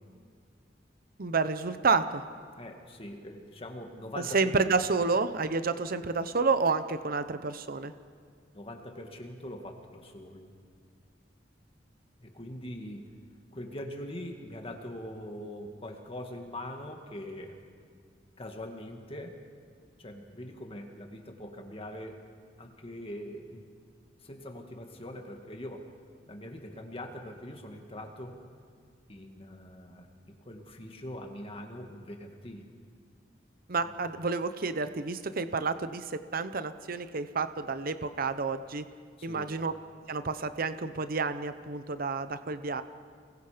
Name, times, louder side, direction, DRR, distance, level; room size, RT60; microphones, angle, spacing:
voice 1, 1.2-2.2 4.3-7.9 33.7-36.0 36.3-38.8 39.2-39.7 40.1-42.8, right 4 dB, 50° right, 11 dB, 0.8 m, -29 dB
voice 2, 2.6-4.5 8.5-10.5 12.2-13.1 13.5-17.6 18.4-19.4 20.0-22.2 22.6-23.6 24.2-25.9 26.3-28.4 29.1-32.7 33.8-33.9 39.2-39.4, left 1 dB, 30° left, 3 dB, 1.9 m, -42 dB
29.0 x 21.5 x 5.1 m, 2.1 s
head